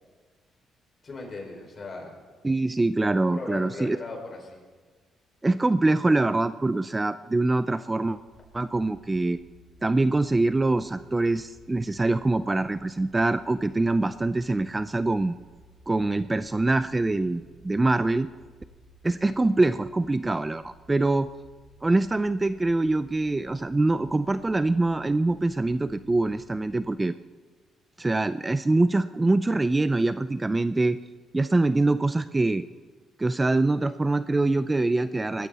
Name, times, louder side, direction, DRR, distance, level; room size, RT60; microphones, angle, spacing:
voice 1, 1.0-2.2 3.2-4.6, left 3 dB, 40° left, 1 dB, 5.4 m, -38 dB
voice 2, 2.4-4.0 5.4-8.2 8.5-9.4 9.8-15.4 15.9-18.3 19.0-21.3 21.8-27.1 28.0-31.0 31.3-32.7 33.2-35.5, right 2 dB, 20° right, 13 dB, 0.5 m, -24 dB
sound 1, 8.1-26.8, equal, 50° right, 5.5 m, -56 dB
20.5 x 14.5 x 4.1 m, 1.4 s
cardioid pair, 90°, 0 cm